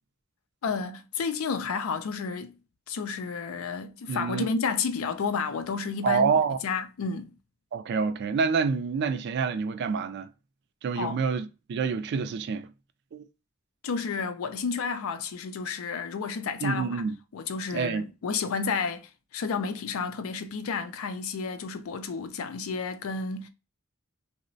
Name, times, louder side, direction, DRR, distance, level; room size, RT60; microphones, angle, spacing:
voice 1, 0.6-2.6 2.9-6.3 6.6-7.3 11.0-11.2 13.8-17.0 17.3-23.5, left 5 dB, 85° left, 0.4 m, -31 dB
voice 2, 4.1-4.5 6.0-6.6 7.7-10.3 10.8-12.7 13.1-13.3 16.6-17.2 17.7-18.0, right 5 dB, 55° right, 0.3 m, -27 dB
2.9 x 2.0 x 2.6 m
head